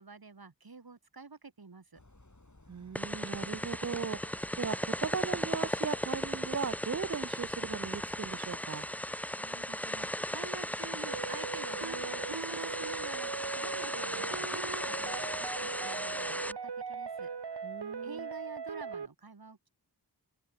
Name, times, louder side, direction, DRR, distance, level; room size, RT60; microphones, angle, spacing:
voice 1, 0.0-2.0 9.2-17.3 18.0-19.7, right 4 dB, 65° right, 1.7 m, -49 dB
sound 1, 1.9-8.4, left 2 dB, 45° left, 5.3 m, -58 dB
voice 2, 2.7-8.9 17.6-18.3, right 6 dB, 45° right, 0.5 m, -38 dB
sound 2, 3.0-16.5, equal, 5° left, 0.8 m, -36 dB
sound 3, 11.1-19.1, right 6 dB, 85° right, 1.1 m, -39 dB
open air
wide cardioid pair, 40°, 39 cm